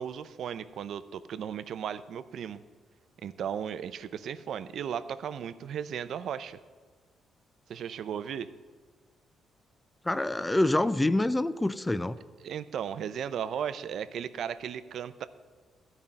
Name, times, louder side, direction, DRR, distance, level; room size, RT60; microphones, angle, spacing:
voice 1, 0.0-2.6 3.2-6.6 7.7-8.5 12.4-15.3, right 8 dB, 65° right, 13 dB, 0.6 m, -36 dB
voice 2, 10.0-12.2, left 1 dB, 15° left, 15 dB, 0.4 m, -26 dB
13.0 x 5.4 x 8.7 m, 1.5 s
cardioid pair, 90°, 0 cm